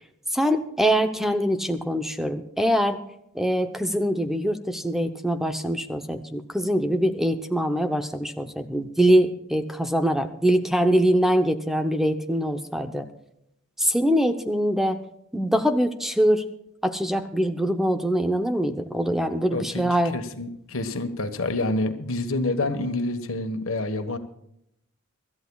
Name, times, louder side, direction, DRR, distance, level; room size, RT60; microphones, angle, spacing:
voice 1, 0.3-3.0 3.3-13.1 13.8-15.0 15.3-16.4 16.8-20.1, equal, ahead, 7 dB, 0.7 m, -23 dB
voice 2, 19.5-19.8 20.1-24.2, left 2 dB, 80° left, 7 dB, 1.4 m, -27 dB
25.0 x 13.5 x 2.3 m, 0.78 s
head